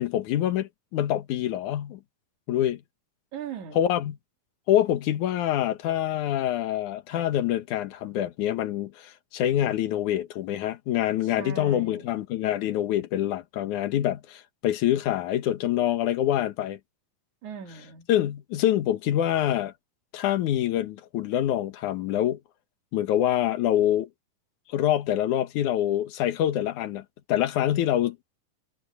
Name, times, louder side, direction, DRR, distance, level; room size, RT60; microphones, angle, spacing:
voice 1, 0.0-2.0 2.5-2.8 3.8-4.1 4.7-16.8 18.1-19.7 20.1-22.4 22.9-24.1 24.7-27.0 27.3-28.2, left 12 dB, 65° left, 2.6 m, -25 dB
voice 2, 3.3-3.9 11.2-12.1 17.4-18.1, right 8 dB, 60° right, 3.2 m, -40 dB
omnidirectional pair, 4.0 m